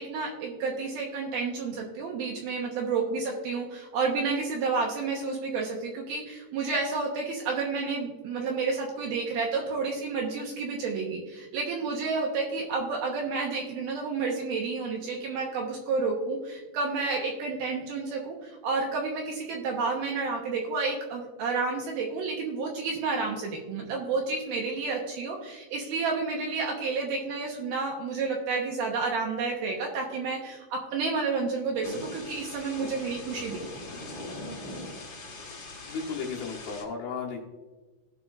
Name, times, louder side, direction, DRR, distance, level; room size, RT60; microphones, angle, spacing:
voice 1, 0.0-33.6, right 4 dB, 70° right, 0 dB, 2.5 m, -30 dB
Thunder / Rain, 31.8-36.8, left 2 dB, 85° left, 1.0 m, -41 dB
voice 2, 35.9-37.4, left 5 dB, 65° left, -3 dB, 2.7 m, -34 dB
17.5 x 6.0 x 2.5 m, 1.2 s
omnidirectional pair, 5.3 m